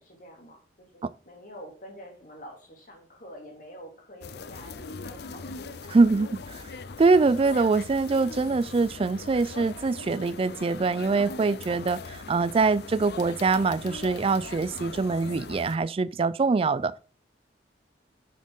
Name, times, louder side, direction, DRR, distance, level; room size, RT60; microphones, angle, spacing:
voice 1, 0.0-6.1, equal, 50° left, 2.7 m, -47 dB
sound 1, 4.2-15.8, left 4 dB, 65° left, 0.6 m, -40 dB
voice 2, 5.9-6.6 7.0-16.9, right 4 dB, 35° right, 0.3 m, -24 dB
10.0 x 6.3 x 3.7 m
head